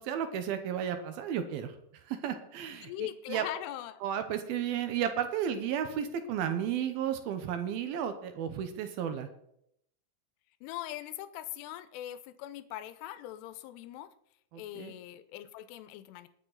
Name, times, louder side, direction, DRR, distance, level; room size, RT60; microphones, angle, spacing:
voice 1, 0.0-1.8 2.1-3.4 4.0-9.3 14.5-15.0, right 9 dB, 75° right, 8 dB, 2.4 m, -33 dB
voice 2, 2.8-4.0 10.6-14.1 14.5-16.3, left 13 dB, 80° left, 14 dB, 2.6 m, -41 dB
20.5 x 7.4 x 4.0 m, 0.75 s
omnidirectional pair, 5.1 m